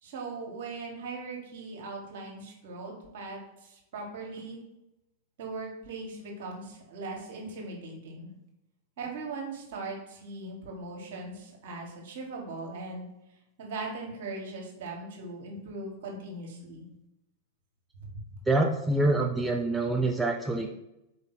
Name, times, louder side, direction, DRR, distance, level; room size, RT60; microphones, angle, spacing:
voice 1, 0.0-4.6 5.4-8.3 9.0-13.1 13.6-16.9 18.0-18.1, right 3 dB, 60° right, 0 dB, 1.3 m, -39 dB
voice 2, 18.5-20.7, right 2 dB, 10° right, 1 dB, 0.4 m, -26 dB
4.5 x 2.6 x 4.1 m, 0.89 s
hypercardioid pair, 95°, 0 cm